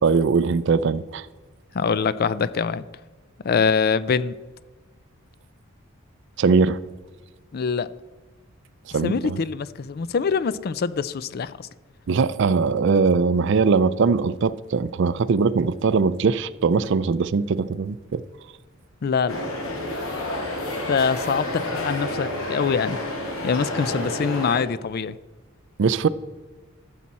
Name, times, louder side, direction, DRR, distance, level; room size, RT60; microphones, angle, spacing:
voice 1, 0.0-1.2 6.4-6.8 8.9-9.4 12.1-18.2 25.8-26.1, right 5 dB, 60° right, 0.4 m, -21 dB
voice 2, 1.7-2.8 3.4-4.3 7.5-7.9 9.0-11.7 19.0-19.5 20.9-23.0 23.4-25.2, left 5 dB, 50° left, 0.4 m, -24 dB
sound 1, 19.3-24.6, left 1 dB, 85° left, 2.2 m, -30 dB
13.0 x 7.4 x 4.1 m
head